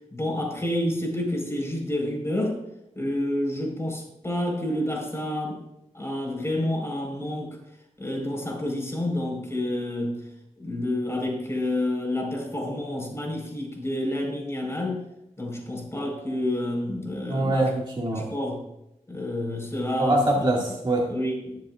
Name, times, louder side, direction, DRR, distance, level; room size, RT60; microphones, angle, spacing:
voice 1, 0.1-2.6 3.0-5.6 5.9-7.5 8.0-10.2 10.6-15.0 15.4-17.7 18.1-18.6 19.1-20.2 21.1-21.6, left 1 dB, 20° left, 0 dB, 4.5 m, -29 dB
voice 2, 17.3-18.3 20.0-21.1, right 1 dB, 35° right, -3 dB, 2.0 m, -24 dB
20.5 x 7.6 x 2.5 m, 0.86 s
cardioid pair, 65°, 13 cm